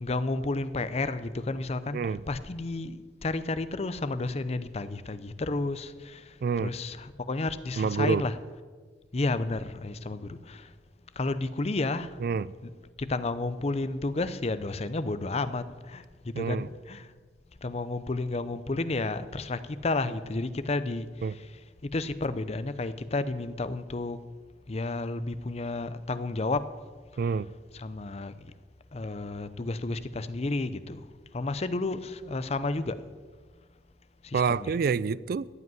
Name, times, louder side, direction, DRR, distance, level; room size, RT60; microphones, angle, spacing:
voice 1, 0.0-2.0 2.3-8.3 9.1-10.7 11.2-12.2 13.0-17.1 17.6-21.1 21.3-21.5 21.8-24.2 24.7-26.7 27.7-28.5 28.9-31.0 31.3-33.0 34.2-34.7, left 2 dB, 35° left, 0.6 m, -31 dB
voice 2, 1.9-2.2 6.4-6.7 7.8-8.3 12.2-12.5 16.3-16.7 21.2-21.3 27.2-27.5 34.3-35.5, right 5 dB, 55° right, 0.3 m, -27 dB
15.0 x 5.2 x 9.5 m
head